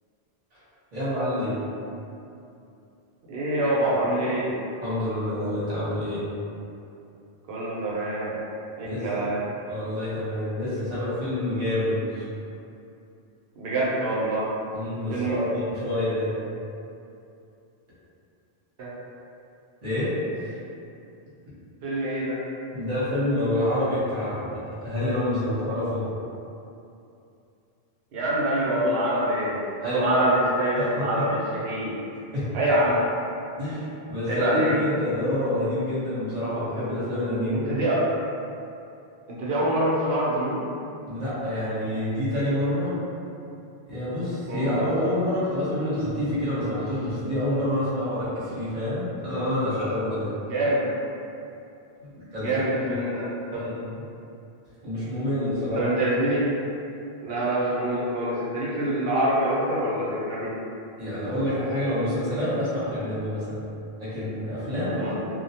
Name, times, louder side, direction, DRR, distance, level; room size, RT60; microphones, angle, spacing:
voice 1, 0.9-1.6 4.8-6.2 8.8-9.1 9.7-12.2 14.7-16.3 19.8-20.5 21.5-21.6 22.7-26.1 29.8-30.3 31.1-31.2 32.3-32.4 33.6-37.7 41.1-43.0 43.9-50.3 52.3-52.9 53.5-54.0 54.8-55.8 61.0-63.5 64.0-65.1, left 1 dB, 45° right, -12 dB, 1.0 m, -27 dB
voice 2, 3.3-4.5 7.5-8.4 8.8-9.4 13.6-14.5 15.1-15.4 18.8-18.9 21.8-22.4 28.1-32.0 32.5-33.0 34.3-34.8 37.5-38.1 39.3-40.6 44.5-44.7 50.4-50.9 52.1-53.7 55.7-56.6 57.2-60.5 65.0-65.1, right 1 dB, 75° right, -7 dB, 0.9 m, -25 dB
2.3 x 2.1 x 2.7 m, 2.7 s
omnidirectional pair, 1.0 m